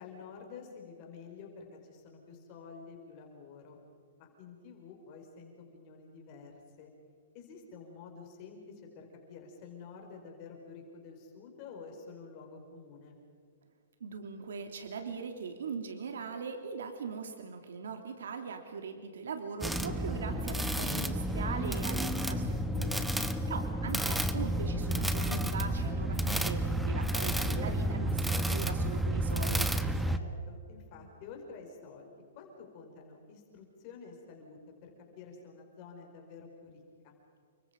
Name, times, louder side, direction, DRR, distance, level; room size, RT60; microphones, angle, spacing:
voice 1, 0.0-3.8 4.2-6.9 7.3-13.1 23.4-23.9 30.0-37.1, left 5 dB, 35° left, 1 dB, 5.2 m, -50 dB
voice 2, 14.0-29.7, right 5 dB, 85° right, 5 dB, 2.9 m, -40 dB
sound 1, 19.6-30.2, right 1 dB, ahead, 1.0 m, -31 dB
30.0 x 25.0 x 5.4 m, 2.2 s
hypercardioid pair, 155°, 0 cm